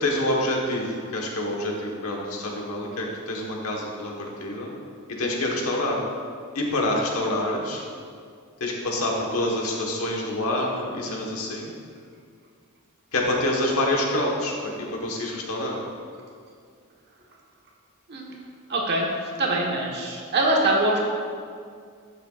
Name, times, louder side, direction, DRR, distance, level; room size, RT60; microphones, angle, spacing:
voice 1, 0.0-4.7 5.2-6.0 6.5-7.8 8.6-11.7 13.1-15.8, left 1 dB, 80° left, -1 dB, 1.3 m, -27 dB
voice 2, 18.7-19.1 19.4-21.0, right 2 dB, 50° right, -1 dB, 1.2 m, -23 dB
11.5 x 6.7 x 2.4 m, 2.2 s
head